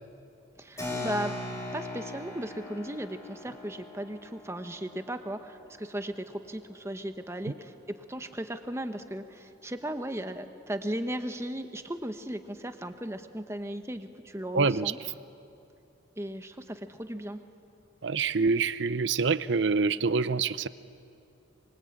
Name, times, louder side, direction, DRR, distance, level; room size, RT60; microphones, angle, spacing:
voice 1, 0.6-1.3 1.7-15.0 16.2-17.4, right 1 dB, 15° right, 8 dB, 1.1 m, -36 dB
Keyboard (musical), 0.8-6.8, left 2 dB, 15° left, 6.0 m, -40 dB
voice 2, 14.5-14.9 18.0-20.7, right 4 dB, 70° right, 16 dB, 0.6 m, -26 dB
25.0 x 23.5 x 8.7 m, 2.7 s
head